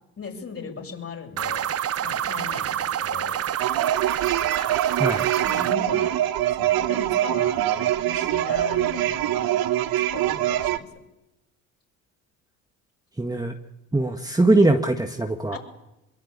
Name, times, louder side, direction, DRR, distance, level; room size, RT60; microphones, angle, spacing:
voice 1, 0.2-1.7 2.0-3.4 5.4-6.2 6.5-9.5 10.0-10.9 15.5-15.6, left 5 dB, 35° left, 3 dB, 7.1 m, -38 dB
sound 1, 1.4-5.8, right 10 dB, 35° right, 0.8 m, -27 dB
sound 2, 3.6-10.8, right 13 dB, 55° right, 1.4 m, -24 dB
voice 2, 13.2-13.5 13.9-15.6, right 2 dB, 10° right, 4 dB, 1.8 m, -21 dB
23.0 x 22.5 x 8.8 m, 0.95 s
hypercardioid pair, 60°, 42 cm